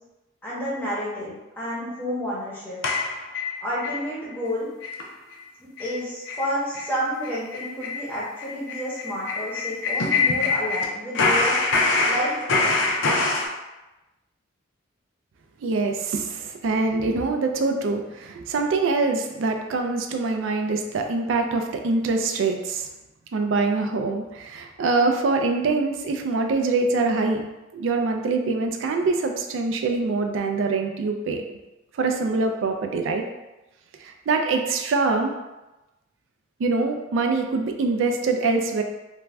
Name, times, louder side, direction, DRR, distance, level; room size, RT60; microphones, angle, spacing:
voice 1, 0.4-2.8 3.6-4.7 5.6-11.5 12.1-12.8, equal, 10° left, -7 dB, 0.7 m, -30 dB
sound 1, 2.8-4.0 4.3-4.4 4.8-5.0 5.3-5.4 5.8-5.9 6.3-6.4 6.7-6.9 7.2-10.9 11.1-13.5, left 3 dB, 70° left, 0.4 m, -24 dB
voice 2, 15.6-22.9 23.3-27.4 27.7-31.5 32.0-33.3 34.0-35.3 36.6-38.8, right 3 dB, 75° right, 4 dB, 0.3 m, -24 dB
2.5 x 2.2 x 3.2 m, 1.0 s
head